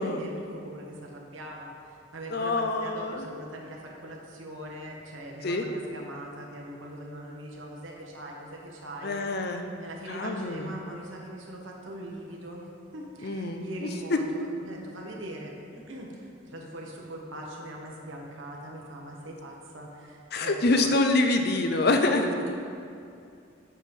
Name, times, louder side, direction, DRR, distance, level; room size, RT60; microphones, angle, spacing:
voice 1, 0.0-9.2 9.8-20.9 22.1-22.5, right 1 dB, 85° right, -1 dB, 1.2 m, -41 dB
voice 2, 2.3-3.3 5.4-5.7 9.0-9.7 10.1-10.7 13.2-14.2 20.3-22.3, left 2 dB, 55° left, 5 dB, 0.6 m, -26 dB
8.3 x 4.7 x 5.4 m, 2.4 s
head